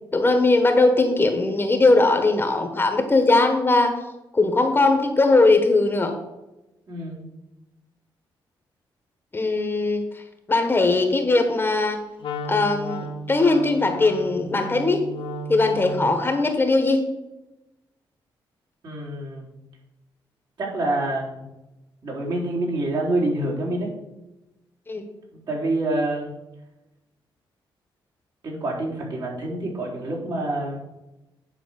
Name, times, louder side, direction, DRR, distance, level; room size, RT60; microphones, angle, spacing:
voice 1, 0.1-4.0 4.3-6.1 9.3-10.0 10.5-12.0 12.4-15.0 15.5-17.0 24.9-25.0, left 2 dB, 25° left, 6 dB, 1.3 m, -19 dB
voice 2, 6.9-7.2 18.8-19.5 20.6-21.5 22.0-23.9 25.5-26.4 28.4-30.8, right 2 dB, 60° right, -4 dB, 3.8 m, -27 dB
Wind instrument woodwind instrument, 12.2-16.3, equal, 80° left, 1.3 m, -34 dB
10.0 x 4.8 x 6.5 m, 0.97 s
cardioid pair, 110°, 9 cm